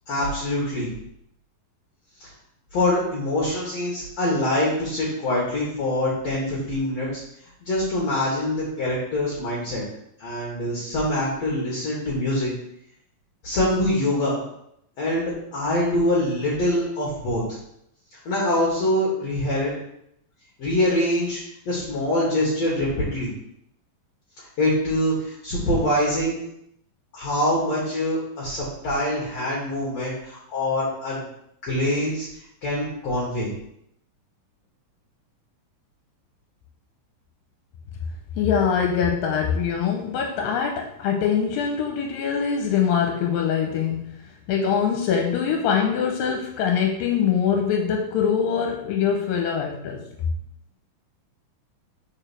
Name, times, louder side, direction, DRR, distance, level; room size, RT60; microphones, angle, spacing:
voice 1, 0.1-0.9 2.2-2.3 2.7-7.1 7.6-9.8 10.2-12.5 13.4-14.4 15.0-17.4 18.1-19.7 20.6-21.4 21.7-23.3 24.4-26.3 27.1-31.2 31.6-32.3 32.6-33.5, left 1 dB, 55° left, -6 dB, 2.5 m, -24 dB
voice 2, 38.4-44.1 44.5-50.0, left 7 dB, 85° left, 2 dB, 2.4 m, -23 dB
4.9 x 4.6 x 6.2 m, 0.76 s
omnidirectional pair, 4.1 m